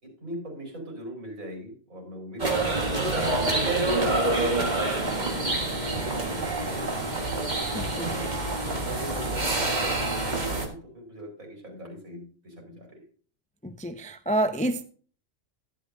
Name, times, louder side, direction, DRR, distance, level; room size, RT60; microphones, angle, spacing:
voice 1, 0.0-2.8 3.3-5.0 5.3-7.1 7.9-8.4 8.6-13.0, right 1 dB, 80° right, 5.4 m, -41 dB
sound 1, 2.4-10.7, right 2 dB, 35° right, 1.7 m, -27 dB
voice 2, 7.7-8.1 13.6-14.8, right 1 dB, 10° left, 0.4 m, -28 dB
12.0 x 11.0 x 2.7 m
omnidirectional pair, 1.4 m